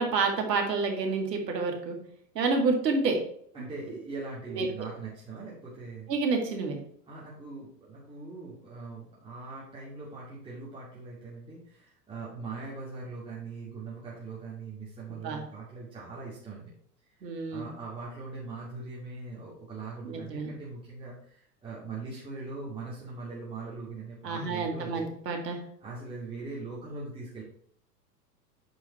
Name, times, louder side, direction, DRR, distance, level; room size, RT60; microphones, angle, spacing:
voice 1, 0.0-2.0 2.4-3.2 4.5-4.7 6.1-6.8 15.1-15.4 17.2-17.7 20.0-20.5 24.2-25.6, right 4 dB, 75° right, 3 dB, 2.2 m, -29 dB
voice 2, 3.5-6.1 7.1-16.7 17.2-25.1 25.8-27.4, right 3 dB, 10° right, -7 dB, 2.3 m, -41 dB
8.1 x 4.8 x 4.2 m, 0.64 s
hypercardioid pair, 105°, 50 cm